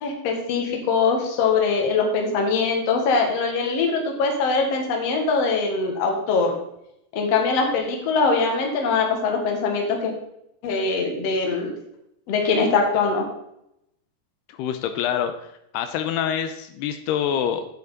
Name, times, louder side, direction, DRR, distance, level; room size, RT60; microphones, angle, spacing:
voice 1, 0.0-6.5 7.1-10.1 10.6-11.7 12.3-13.3, left 4 dB, 50° left, 2 dB, 2.2 m, -22 dB
voice 2, 14.5-17.7, left 9 dB, 85° left, 8 dB, 2.7 m, -26 dB
9.5 x 8.2 x 4.1 m, 0.80 s
omnidirectional pair, 4.7 m